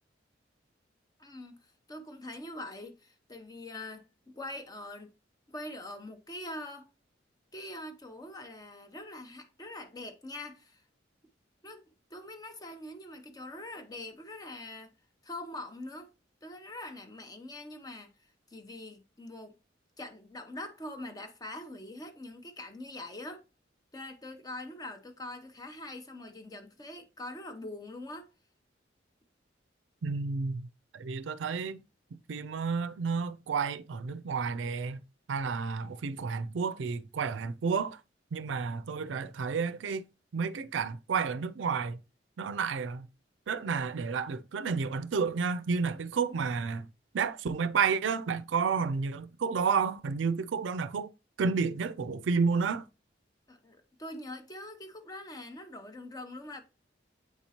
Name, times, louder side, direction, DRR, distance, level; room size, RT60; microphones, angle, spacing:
voice 1, 1.2-1.6 1.9-5.1 5.5-6.9 7.5-10.8 11.6-11.8 12.1-14.9 15.2-16.1 16.4-18.1 18.5-19.5 20.0-23.4 23.9-28.3 53.5-56.6, left 1 dB, 20° left, 0.7 m, -43 dB
voice 2, 30.0-30.7 30.9-31.8 32.1-35.0 35.3-38.0 38.3-40.0 40.3-42.0 42.4-43.1 43.5-46.9 47.1-51.1 51.4-52.8, right 5 dB, 85° right, 0.4 m, -31 dB
8.3 x 4.4 x 2.8 m
head